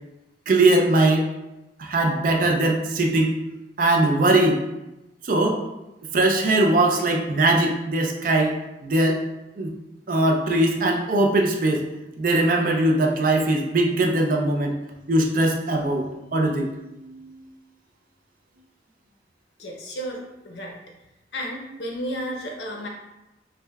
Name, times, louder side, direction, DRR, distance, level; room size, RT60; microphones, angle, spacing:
voice 1, 0.5-1.3 1.8-3.3 3.8-4.6 5.2-5.6 6.1-8.6 8.8-9.2 9.6-9.7 10.1-11.9 12.2-14.7 15.1-17.4, right 2 dB, 50° right, 2 dB, 0.4 m, -21 dB
voice 2, 19.6-20.8 21.3-22.9, equal, 80° left, 0 dB, 0.7 m, -32 dB
4.8 x 2.1 x 2.3 m, 0.97 s
head